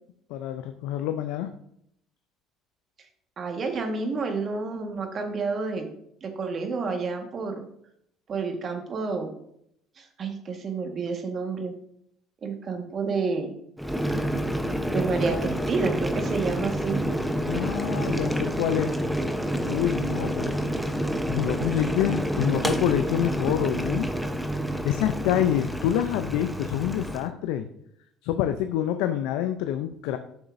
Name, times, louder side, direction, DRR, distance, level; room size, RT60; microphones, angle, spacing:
voice 1, 0.3-1.5 17.5-18.9 19.7-20.6 21.2-24.1 24.8-27.7 28.2-30.2, left 11 dB, 75° left, 8 dB, 0.5 m, -27 dB
voice 2, 3.4-5.9 6.2-7.7 8.3-9.3 10.0-11.7 12.4-13.5 14.9-17.0, right 4 dB, 45° right, 5 dB, 1.5 m, -29 dB
Boiling, 13.8-27.3, equal, ahead, 0.8 m, -28 dB
9.7 x 6.2 x 2.6 m, 0.72 s
hypercardioid pair, 75°, 0 cm